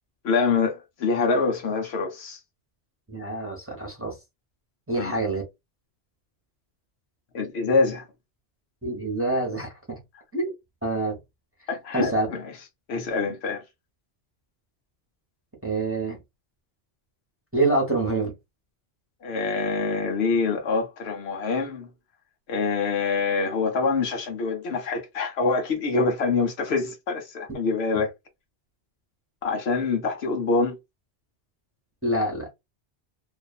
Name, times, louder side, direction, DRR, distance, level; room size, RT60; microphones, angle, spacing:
voice 1, 0.2-2.4 4.9-5.1 7.3-8.0 11.7-12.5 12.9-13.6 19.2-21.9 22.5-28.1 29.4-30.8, left 4 dB, 75° left, 0.9 m, -25 dB
voice 2, 3.1-4.2 4.9-5.4 8.8-10.0 10.3-10.5 10.8-11.2 11.9-12.3 15.6-16.2 17.5-18.3 32.0-32.5, right 2 dB, 15° right, 0.9 m, -26 dB
2.5 x 2.4 x 2.3 m
omnidirectional pair, 1.1 m